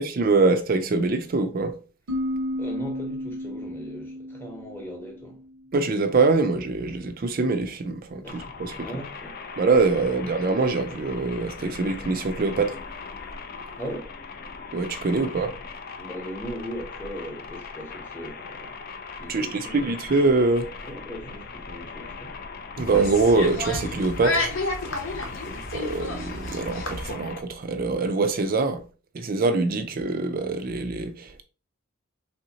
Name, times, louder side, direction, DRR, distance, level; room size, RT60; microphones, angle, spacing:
voice 1, 0.0-1.8 5.7-8.9 9.6-12.8 14.7-15.5 19.3-20.7 22.8-24.5 25.7-28.8 29.1-31.4, right 3 dB, 40° right, 0.4 m, -24 dB
sound 1, 2.1-5.7, left 1 dB, 90° right, 0.8 m, -33 dB
voice 2, 2.6-5.4 8.2-9.4 13.8-14.1 15.2-15.5 16.0-18.8 19.2-20.0 20.8-22.4 25.3-25.6, equal, 10° left, 0.8 m, -39 dB
sound 2, 8.2-27.4, left 4 dB, 45° left, 0.4 m, -40 dB
sound 3, 22.8-27.1, left 2 dB, 65° left, 0.8 m, -31 dB
3.5 x 2.7 x 2.8 m
head